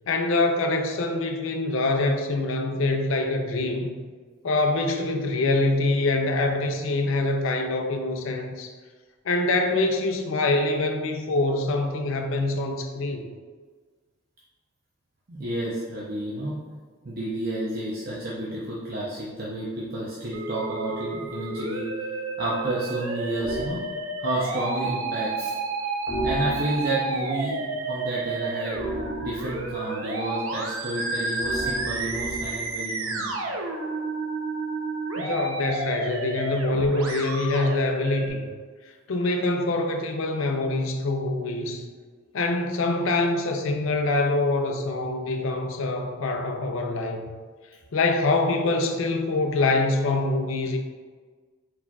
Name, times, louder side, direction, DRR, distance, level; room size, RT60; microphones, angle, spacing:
voice 1, 0.1-3.9 4.4-8.7 9.2-13.2 35.2-38.5 39.1-41.8 42.3-47.3 47.9-50.8, left 2 dB, 75° left, 4 dB, 0.5 m, -25 dB
voice 2, 15.3-16.6 17.0-21.9 22.4-23.9 24.2-25.6 26.2-28.8 29.2-33.3, right 1 dB, 45° right, -6 dB, 0.6 m, -30 dB
Musical instrument, 20.3-38.3, right 3 dB, 85° right, 0.6 m, -31 dB
sound 1, 23.4-23.8 26.1-27.0 28.7-29.8 31.4-32.8, right 1 dB, 5° left, 0.6 m, -34 dB
4.3 x 4.3 x 2.3 m, 1.5 s
head